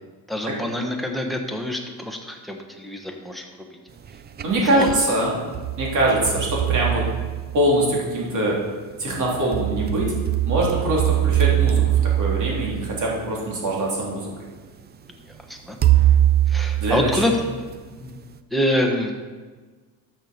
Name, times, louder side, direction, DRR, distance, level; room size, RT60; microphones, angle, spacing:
voice 1, 0.3-3.8 4.7-5.0 15.5-15.8 16.5-17.6 18.0-18.2 18.5-19.1, left 1 dB, ahead, 2 dB, 1.2 m, -26 dB
sound 1, 4.1-5.0 5.5-7.9 9.1-13.5 14.3-14.4 15.8-17.7, right 12 dB, 25° right, 0.4 m, -22 dB
voice 2, 4.4-5.4 5.8-7.0 7.5-8.6 9.0-10.1 10.4-14.3 16.8-17.2, right 1 dB, 50° right, -4 dB, 3.2 m, -23 dB
13.0 x 6.9 x 4.4 m, 1.4 s
cardioid pair, 135°, 39 cm